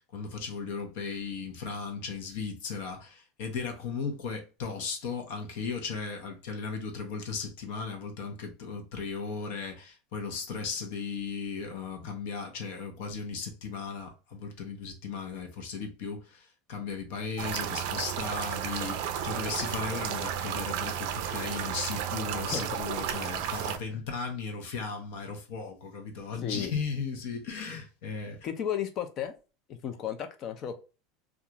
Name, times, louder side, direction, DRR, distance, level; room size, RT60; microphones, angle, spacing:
voice 1, 0.0-28.5, left 5 dB, 65° left, 0.8 m, -36 dB
sound 1, 17.4-23.8, right 9 dB, 55° right, 0.4 m, -33 dB
voice 2, 26.4-26.7 28.4-29.3 29.7-30.8, left 9 dB, 35° left, 0.4 m, -34 dB
2.4 x 2.4 x 2.9 m
supercardioid pair, 165°, 0 cm